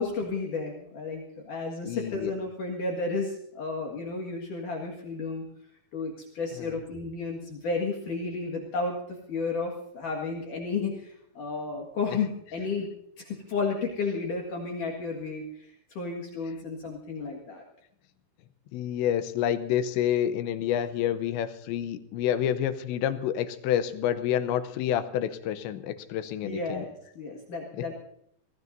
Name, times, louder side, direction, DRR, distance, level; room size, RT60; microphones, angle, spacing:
voice 1, 0.0-5.4 5.9-12.9 13.2-17.6 26.4-27.9, left 4 dB, 55° left, 0 dB, 2.9 m, -32 dB
voice 2, 1.8-2.3 6.6-6.8 18.7-26.8, left 10 dB, 90° left, 11 dB, 3.2 m, -28 dB
25.0 x 17.5 x 2.7 m, 0.70 s
omnidirectional pair, 5.0 m